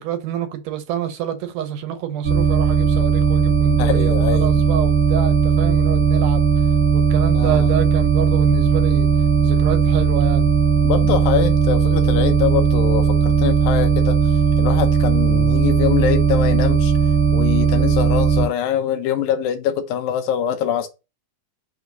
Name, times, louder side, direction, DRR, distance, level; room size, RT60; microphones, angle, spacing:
voice 1, 0.0-6.5 6.9-9.1 9.4-10.5, right 9 dB, 75° right, 2.2 m, -27 dB
sound 1, 2.2-18.5, right 5 dB, 55° right, 1.3 m, -17 dB
voice 2, 3.8-4.5 7.3-7.7 10.8-16.9 17.3-20.9, left 9 dB, 85° left, 2.6 m, -23 dB
6.2 x 3.1 x 5.1 m
omnidirectional pair, 4.0 m